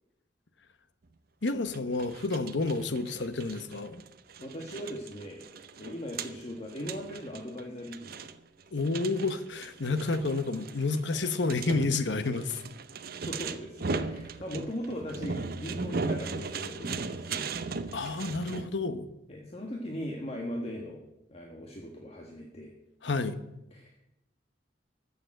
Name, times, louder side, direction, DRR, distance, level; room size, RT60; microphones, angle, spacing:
voice 1, 1.4-4.0 8.7-12.6 17.9-19.1 23.0-23.4, left 3 dB, 80° left, 11 dB, 1.0 m, -30 dB
sound 1, 1.5-18.7, right 4 dB, 55° right, 0.8 m, -38 dB
voice 2, 4.4-5.5 5.8-8.3 13.2-17.4 19.3-21.0 21.3-22.7 23.7-24.0, equal, 35° left, 0 dB, 1.6 m, -39 dB
13.5 x 7.0 x 7.8 m, 0.89 s
head